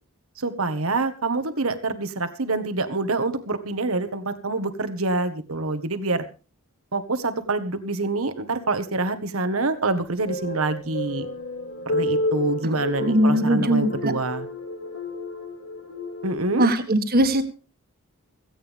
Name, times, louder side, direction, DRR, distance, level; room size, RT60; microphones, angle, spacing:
voice 1, 0.4-6.2 6.9-11.3 11.8-14.5 16.2-16.7, right 3 dB, 70° right, 9 dB, 1.6 m, -26 dB
sound 1, 9.9-16.4, left 1 dB, 70° left, 4.8 m, -30 dB
voice 2, 13.0-14.1 16.6-17.4, right 1 dB, 45° right, 8 dB, 1.9 m, -20 dB
17.0 x 16.0 x 3.5 m, 0.34 s
head